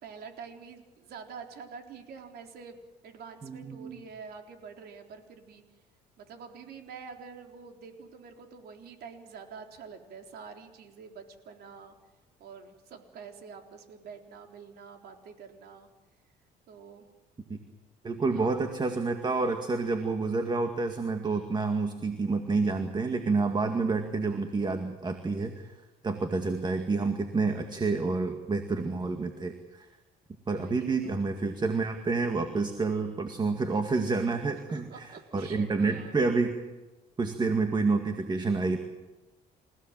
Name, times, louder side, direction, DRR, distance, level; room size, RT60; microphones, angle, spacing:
voice 1, 0.0-5.6 6.2-12.0 12.4-15.9 16.7-17.1 18.3-18.5 30.5-31.2 34.5-36.2, right 5 dB, 70° right, 4 dB, 3.9 m, -47 dB
voice 2, 3.4-4.0 17.5-17.6 18.0-25.7 26.0-29.9 30.5-36.6 37.2-38.8, right 3 dB, 25° right, 6 dB, 2.1 m, -29 dB
29.5 x 16.5 x 7.5 m, 1.1 s
cardioid pair, 110°, 17 cm